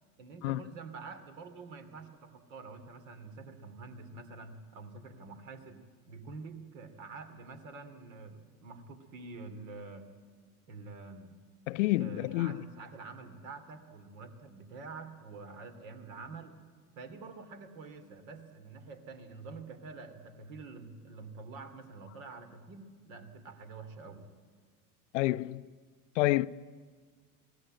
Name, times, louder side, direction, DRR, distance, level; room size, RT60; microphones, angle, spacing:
voice 1, 0.2-10.1 10.7-11.4 12.0-16.6 17.0-24.3, right 4 dB, 60° right, 2.8 m, -47 dB
voice 2, 11.7-12.6 25.1-25.7 26.2-26.5, left 18 dB, 55° left, 0.6 m, -28 dB
22.5 x 17.5 x 9.1 m
figure-of-eight pair, 80°, 45 cm